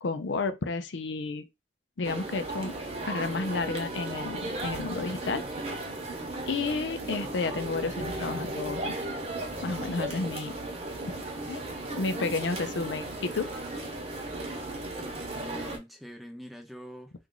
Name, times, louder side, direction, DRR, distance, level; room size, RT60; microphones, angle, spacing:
voice 1, 0.0-1.4 2.0-2.7 3.1-5.4 6.5-8.9 9.6-10.5 11.1-11.2 11.5-11.6 11.9-13.5, left 3 dB, 90° left, 0.5 m, -31 dB
sound 1, 2.0-15.8, right 2 dB, 35° right, 0.9 m, -35 dB
voice 2, 14.9-17.1, equal, ahead, 0.7 m, -45 dB
3.0 x 2.4 x 3.8 m
head